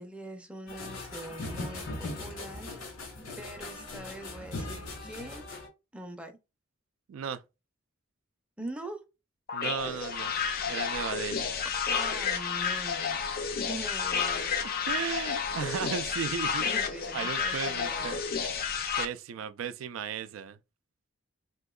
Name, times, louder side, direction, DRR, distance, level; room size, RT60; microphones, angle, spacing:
voice 1, 0.0-2.7 3.4-5.5 5.9-6.3 8.6-9.0 11.8-13.2 13.6-14.7 16.6-18.2, right 1 dB, 5° right, 0.5 m, -43 dB
sound 1, 0.7-5.7, left 2 dB, 85° left, 1.7 m, -39 dB
voice 2, 7.1-7.4 9.5-10.3 10.7-11.5 14.6-16.7 17.1-18.2 19.0-20.6, right 7 dB, 85° right, 0.3 m, -35 dB
sound 2, 9.5-19.0, left 6 dB, 50° left, 0.5 m, -31 dB
3.6 x 2.9 x 2.3 m
head